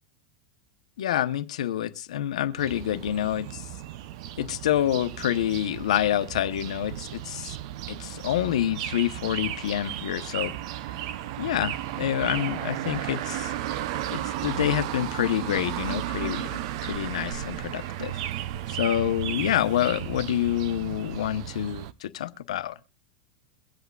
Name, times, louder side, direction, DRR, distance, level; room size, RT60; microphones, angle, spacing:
voice 1, 1.0-3.7 4.4-7.6 7.9-10.5 11.4-13.5 14.1-18.2 18.7-22.8, left 11 dB, 90° left, 0.9 m, -27 dB
sound 1, 2.6-21.9, right 12 dB, 60° right, 0.7 m, -34 dB
22.5 x 8.1 x 2.3 m
supercardioid pair, 140°, 3 cm